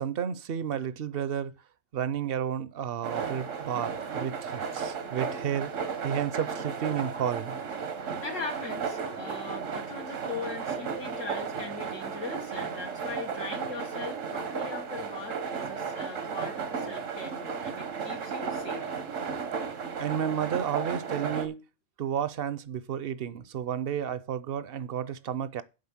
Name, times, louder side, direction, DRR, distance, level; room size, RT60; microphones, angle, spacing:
voice 1, 0.0-1.5 1.9-5.7 6.0-7.6 20.0-21.6 22.0-25.6, right 9 dB, 60° right, 0.7 m, -32 dB
sound 1, 3.0-21.5, right 6 dB, 90° right, 1.4 m, -34 dB
voice 2, 8.2-18.9, left 4 dB, 85° left, 1.9 m, -40 dB
7.6 x 5.2 x 7.2 m
omnidirectional pair, 1.3 m